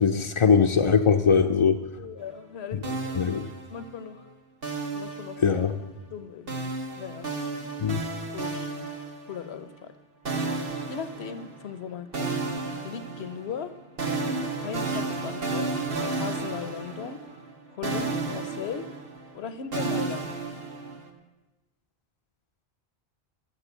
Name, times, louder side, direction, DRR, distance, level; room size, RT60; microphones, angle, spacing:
voice 1, 0.0-1.8 3.2-3.4 5.4-5.7 7.8-8.0, left 6 dB, 45° left, 4 dB, 0.4 m, -21 dB
voice 2, 2.0-3.4 3.7-4.3 4.9-5.6 6.1-7.3 8.3-8.7 9.3-9.9 10.9-12.5 12.8-13.7 14.6-15.7 16.1-17.2 17.7-18.9 19.3-20.3, left 7 dB, 85° left, 12 dB, 1.1 m, -37 dB
sound 1, 2.8-4.1 4.6-5.8 6.5-9.6 10.2-11.8 12.1-17.6 17.8-21.1, right 3 dB, 65° right, 1.5 m, -32 dB
13.5 x 6.7 x 8.0 m, 1.1 s
omnidirectional pair, 1.1 m